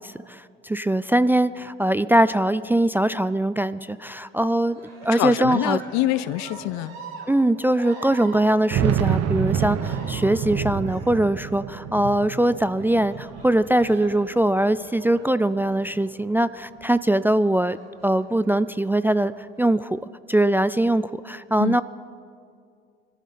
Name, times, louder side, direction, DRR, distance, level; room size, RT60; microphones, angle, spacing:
voice 1, 0.0-4.8 5.1-5.8 7.3-17.8 18.0-19.3 19.6-20.0 20.3-21.8, right 1 dB, 5° right, 15 dB, 0.3 m, -22 dB
Cheering, 4.6-16.3 17.6-18.4 19.2-19.8, right 3 dB, 90° right, 3.4 m, -44 dB
sound 1, 4.8-4.9 5.1-5.2 6.0-6.1 6.6-6.7 8.3-14.7 15.1-16.1, right 9 dB, 60° right, 1.1 m, -28 dB
voice 2, 5.1-6.9 21.6-21.8, left 16 dB, 65° left, 18 dB, 0.6 m, -25 dB
21.5 x 14.5 x 4.2 m, 2.3 s
hypercardioid pair, 65°, 29 cm